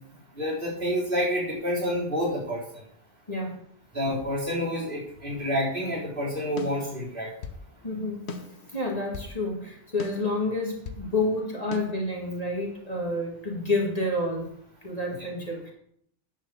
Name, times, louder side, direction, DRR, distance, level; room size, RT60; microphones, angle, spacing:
voice 1, 0.4-2.6 3.9-7.3, equal, 50° right, -6 dB, 4.3 m, -28 dB
sound 1, 6.6-7.6 8.3-9.4 10.0-11.1 11.7-11.8, left 4 dB, 65° left, 1.2 m, -38 dB
voice 2, 7.8-8.2 8.7-14.5 14.8-15.7, left 2 dB, 35° left, -2 dB, 2.1 m, -29 dB
10.5 x 5.0 x 6.9 m, 0.67 s
omnidirectional pair, 1.2 m